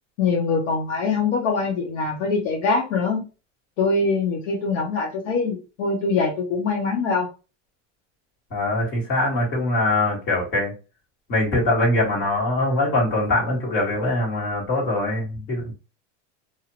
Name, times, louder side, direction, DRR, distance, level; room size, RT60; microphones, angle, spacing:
voice 1, 0.2-3.3 3.8-7.3, left 4 dB, 65° left, -1 dB, 0.9 m, -23 dB
voice 2, 8.5-10.7 11.3-15.7, left 2 dB, 30° left, -5 dB, 1.7 m, -22 dB
2.7 x 2.5 x 2.9 m, 0.31 s
supercardioid pair, 165°, 37 cm